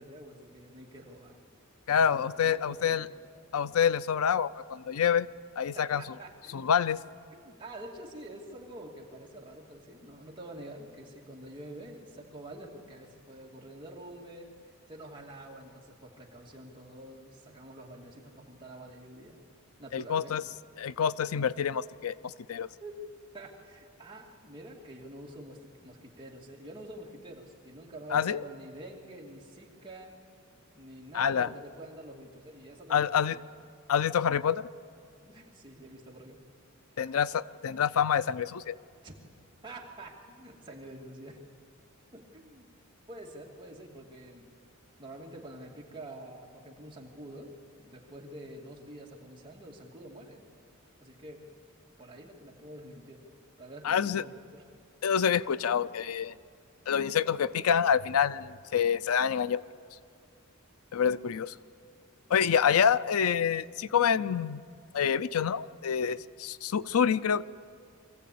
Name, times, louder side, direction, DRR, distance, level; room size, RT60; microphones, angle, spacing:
voice 1, 0.0-1.4 1.9-3.1 5.7-6.6 7.3-14.5 14.9-19.4 19.8-20.4 22.8-23.0 23.3-30.2 30.7-33.4 35.2-36.4 39.0-39.1 39.6-41.4 42.1-42.6 43.1-44.5 45.0-50.4 51.0-51.5 52.0-53.2 53.6-54.6, right 1 dB, 20° right, -2 dB, 2.4 m, -47 dB
voice 2, 1.9-3.1 3.5-5.3 5.6-6.0 6.5-7.0 19.9-20.4 20.8-22.7 28.1-28.4 31.1-31.5 32.9-33.4 33.9-34.7 37.0-38.7 53.8-54.2 55.0-56.3 56.9-59.6 60.9-61.5 62.3-64.6 64.9-67.4, left 7 dB, 90° left, 17 dB, 0.5 m, -27 dB
24.0 x 15.0 x 8.5 m, 2.3 s
head